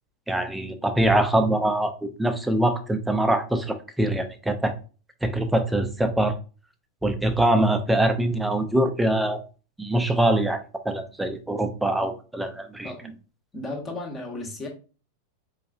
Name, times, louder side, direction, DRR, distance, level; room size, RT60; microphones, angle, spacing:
voice 1, 0.3-4.7 5.2-6.3 7.0-9.4 9.8-12.9, right 1 dB, 5° right, 0.5 m, -23 dB
voice 2, 12.8-13.2 13.5-14.7, left 2 dB, 20° left, 0.9 m, -34 dB
4.7 x 2.3 x 2.4 m
figure-of-eight pair, 90°, 0 cm